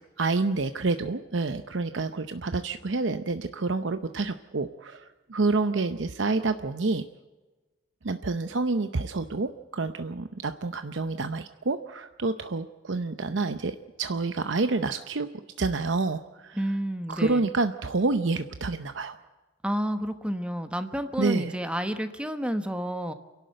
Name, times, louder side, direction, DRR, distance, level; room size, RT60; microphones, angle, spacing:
voice 1, 0.2-7.0 8.0-15.3 15.6-16.6 17.1-19.2 21.2-21.5, right 3 dB, 70° right, 9 dB, 0.8 m, -28 dB
voice 2, 16.5-17.6 19.6-23.1, equal, 5° right, 8 dB, 1.1 m, -30 dB
28.5 x 12.0 x 7.9 m, 1.2 s
head